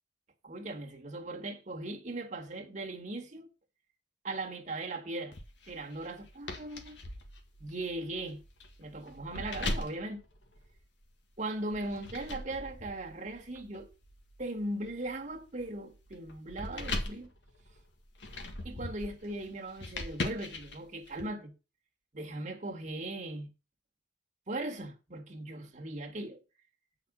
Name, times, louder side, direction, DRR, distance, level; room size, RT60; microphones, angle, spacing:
voice 1, 0.4-3.5 4.2-5.4 5.7-7.0 7.6-8.4 8.8-10.2 11.4-13.9 14.4-17.3 18.6-21.5 22.1-23.5 24.5-26.4, right 2 dB, 45° right, 1.6 m, -38 dB
sound 1, 5.3-11.1 11.7-21.2, left 2 dB, 80° left, 1.8 m, -41 dB
8.6 x 5.2 x 6.0 m
head